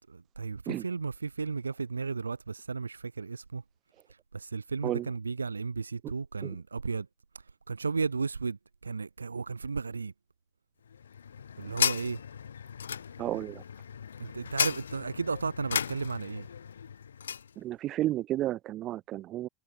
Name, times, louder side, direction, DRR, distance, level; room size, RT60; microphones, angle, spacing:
voice 1, 0.1-3.6 4.3-7.1 7.7-8.6 8.8-10.1 11.6-12.2 14.2-16.5, right 4 dB, 85° right, 0.6 m, -34 dB
sound 1, 10.9-17.5, left 7 dB, 75° left, 0.4 m, -35 dB
voice 2, 13.2-13.6 17.6-19.5, right 14 dB, 40° right, 0.9 m, -32 dB
figure-of-eight pair, 85°, 0 cm